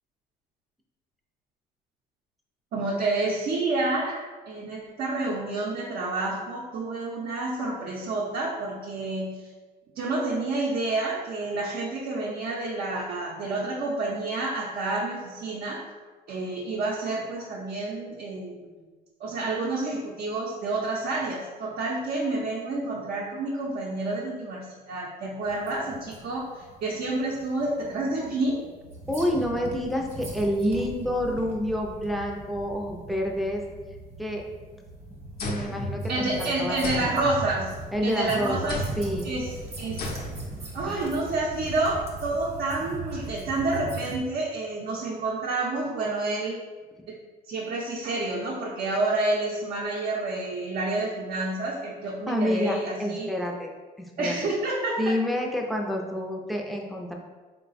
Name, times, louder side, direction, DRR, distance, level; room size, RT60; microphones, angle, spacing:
voice 1, 2.7-9.5 9.9-15.8 16.3-18.8 19.2-28.6 36.1-37.8 38.0-38.8 39.2-39.5 39.8-40.1 40.7-46.6 47.1-47.2 47.4-53.3 54.2-55.0, right 2 dB, 60° right, -4 dB, 0.7 m, -29 dB
sound 1, 25.4-44.2, right 2 dB, 40° right, 1.0 m, -40 dB
voice 2, 29.1-33.6 34.2-34.4 35.4-37.1 37.9-39.3 40.8-41.1 52.3-53.7 54.0-54.4 55.0-57.1, equal, ahead, 0 dB, 0.5 m, -28 dB
sound 2, 35.4-36.4 36.8-38.1 38.7-39.2 40.0-40.6, equal, 70° left, 0.7 m, -34 dB
3.8 x 2.2 x 4.0 m, 1.3 s
cardioid pair, 110°, 17 cm